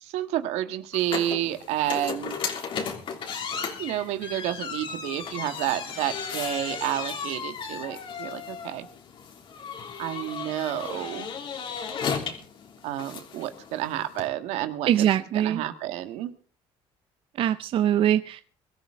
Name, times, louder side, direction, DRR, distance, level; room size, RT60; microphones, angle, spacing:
voice 1, 0.0-2.4 3.8-8.9 10.0-11.3 12.8-15.1 15.3-16.3, right 13 dB, 80° right, 10 dB, 1.7 m, -30 dB
sound 1, 0.9-14.3, left 6 dB, 50° left, 3.3 m, -35 dB
voice 2, 14.9-15.6 17.4-18.4, right 11 dB, 55° right, 12 dB, 0.6 m, -22 dB
22.5 x 13.5 x 3.7 m, 0.40 s
cardioid pair, 115°, 11 cm